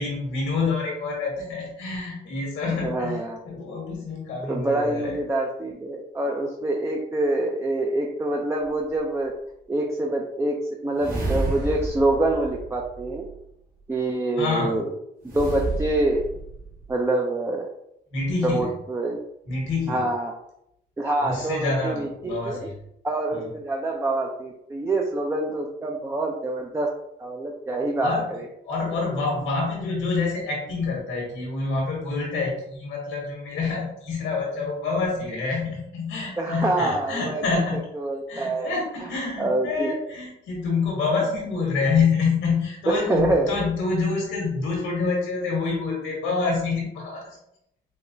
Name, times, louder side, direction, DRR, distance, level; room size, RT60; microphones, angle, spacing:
voice 1, 0.0-3.2 3.4-5.2 14.4-14.8 18.1-18.7 19.5-20.0 21.2-22.7 23.3-23.5 28.0-28.3 28.6-37.9 38.3-47.3, left 4 dB, 90° left, -2 dB, 1.5 m, -27 dB
voice 2, 2.8-3.4 4.5-9.3 9.7-13.3 13.9-14.9 15.3-16.2 16.9-17.7 18.4-19.2 19.9-20.3 21.0-22.7 23.0-26.9 27.2-28.5 36.4-37.4 37.9-38.7 39.4-39.9 42.9-43.6, right 2 dB, 15° right, 1 dB, 0.4 m, -26 dB
sound 1, 8.6-8.7 11.0-13.4 15.2-16.9, right 2 dB, 45° right, 1.4 m, -31 dB
4.8 x 2.1 x 2.6 m, 0.78 s
cardioid pair, 90°, 20 cm